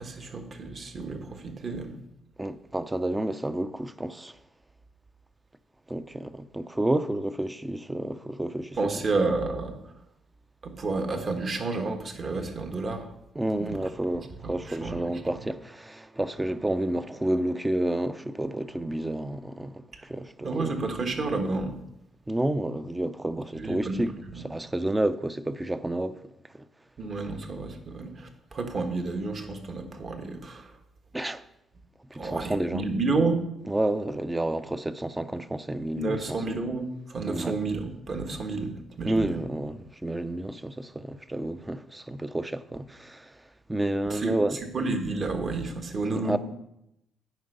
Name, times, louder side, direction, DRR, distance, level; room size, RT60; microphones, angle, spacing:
voice 1, 0.0-1.9 8.8-9.8 10.6-13.1 13.6-13.8 14.7-15.1 20.4-21.7 23.6-24.0 24.3-24.4 27.0-30.7 32.1-33.4 35.9-39.4 44.1-44.3 44.7-46.4, right 3 dB, 45° right, 1.4 m, -30 dB
voice 2, 2.4-4.4 5.9-8.9 13.4-20.7 22.3-26.2 26.5-26.6 31.1-31.4 32.1-32.9 33.7-36.4 37.3-37.5 39.1-43.4 43.7-44.6 46.1-46.4, right 1 dB, 10° right, 0.5 m, -30 dB
9.2 x 5.2 x 6.6 m
cardioid pair, 90°, 0 cm